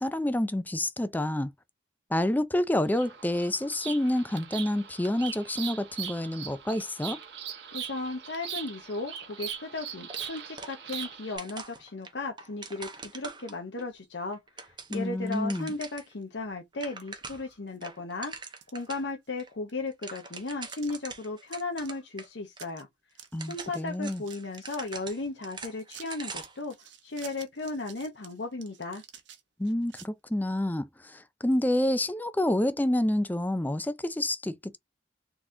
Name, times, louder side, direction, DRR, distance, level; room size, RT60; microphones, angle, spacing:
voice 1, 0.0-1.5 2.1-7.2 14.9-15.7 23.3-24.2 29.6-34.8, left 1 dB, 10° left, 0.4 m, -28 dB
Bird vocalization bird call bird song, 2.9-11.4, right 8 dB, 65° right, 1.3 m, -40 dB
voice 2, 7.7-18.3 18.7-22.9 23.4-26.7 27.0-29.0, left 3 dB, 75° left, 0.9 m, -36 dB
sound 1, 10.1-11.1 11.4-13.8 14.3-16.1 16.4-16.5 16.7-17.5 17.8-19.1 19.4-19.5 19.8-22.3 22.6-22.7 23.2-26.6, right 4 dB, 25° right, 0.9 m, -43 dB
sound 2, 15.1-15.7 16.2-16.3 17.0-17.1 17.5-18.0 18.4-19.4 19.7-19.8 20.7-21.1 21.5-21.9 22.2-22.3 22.5-22.8 23.1-25.0 25.4-30.1, right 9 dB, 85° right, 1.1 m, -51 dB
4.0 x 2.9 x 3.7 m
head